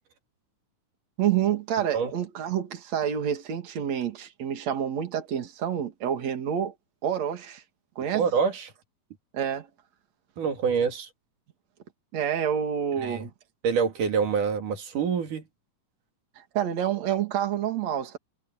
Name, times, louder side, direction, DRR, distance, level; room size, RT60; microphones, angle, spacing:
voice 1, 1.2-6.7 7.0-7.6 8.0-8.3 9.3-9.7 12.1-13.3 16.4-18.2, right 9 dB, 60° right, 3.5 m, -28 dB
voice 2, 8.1-8.7 10.4-11.1 13.0-13.3 13.6-15.4, right 6 dB, 90° right, 4.1 m, -26 dB
omnidirectional pair, 3.6 m